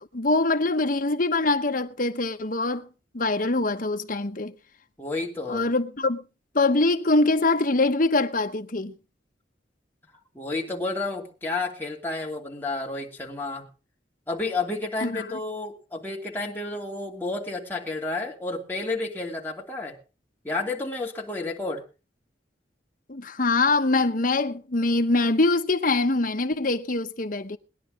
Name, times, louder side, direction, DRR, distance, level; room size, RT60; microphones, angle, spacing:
voice 1, 0.1-2.9 3.1-4.5 5.5-6.2 6.5-8.9 15.0-15.2 23.1-27.6, left 2 dB, 50° left, 1.1 m, -23 dB
voice 2, 5.0-5.7 10.3-13.7 14.3-20.0 20.4-21.8, left 3 dB, 10° left, 2.8 m, -31 dB
20.0 x 11.0 x 3.7 m
head